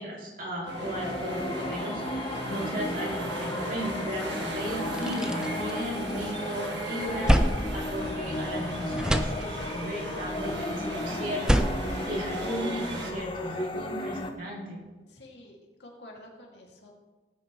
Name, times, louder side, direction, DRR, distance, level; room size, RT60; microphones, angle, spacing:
voice 1, 0.0-14.8, equal, 50° right, -3 dB, 3.0 m, -36 dB
sound 1, 0.6-14.3, left 1 dB, 25° left, 0.8 m, -35 dB
sound 2, 0.7-13.1, right 1 dB, 80° right, 1.6 m, -37 dB
sound 3, 4.9-6.4 6.8-8.6 8.9-9.9 11.2-12.9, equal, 5° right, 0.4 m, -28 dB
voice 2, 15.1-16.9, left 1 dB, 70° left, -1 dB, 2.4 m, -49 dB
17.5 x 8.8 x 3.1 m, 1.3 s
head